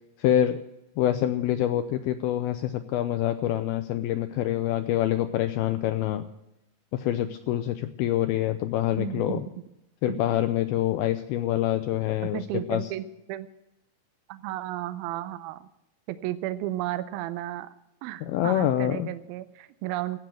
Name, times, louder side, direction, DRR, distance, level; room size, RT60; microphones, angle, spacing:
voice 1, 0.2-0.6 1.0-6.3 6.9-9.4 10.0-12.4 12.7-12.9 18.2-19.1, left 12 dB, 85° left, 9 dB, 2.1 m, -26 dB
voice 2, 8.9-9.4 10.1-10.2 12.2-13.5 14.3-15.7 16.1-17.7 18.0-20.2, right 13 dB, 90° right, 12 dB, 2.1 m, -33 dB
15.0 x 8.7 x 7.6 m, 0.88 s
omnidirectional pair, 5.1 m